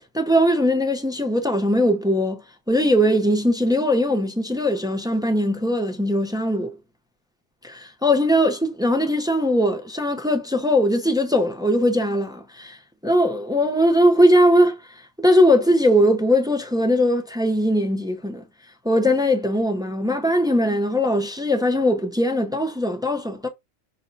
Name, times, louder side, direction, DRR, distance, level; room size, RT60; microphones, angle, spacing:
voice 1, 0.1-2.4 2.7-6.7 7.6-12.8 13.0-14.8 15.2-18.4 18.8-23.5, equal, 5° right, 0.3 m, -20 dB
5.8 x 2.2 x 4.0 m
omnidirectional pair, 1.2 m